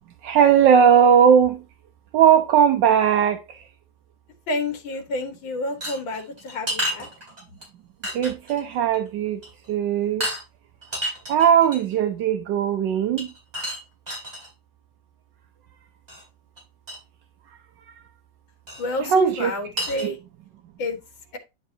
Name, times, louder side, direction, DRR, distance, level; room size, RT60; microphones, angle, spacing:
voice 1, 0.2-1.6 2.1-3.4 8.1-9.4 9.7-10.3 11.3-13.3 19.0-19.5 20.0-20.1, right 8 dB, 75° right, 1.4 m, -18 dB
voice 2, 4.5-7.1 18.8-20.2 20.8-21.0, left 2 dB, 90° left, 2.2 m, -29 dB
sound 1, 5.8-7.6 8.0-8.6 8.9-9.1 9.4-9.7 10.2-10.4 10.8-11.9 13.2-14.5 16.1-16.2 16.6-16.7 16.9-17.0 18.7-18.8 19.3-19.4 19.8-20.1, equal, 20° right, 4.0 m, -30 dB
10.0 x 5.5 x 2.8 m
omnidirectional pair, 2.0 m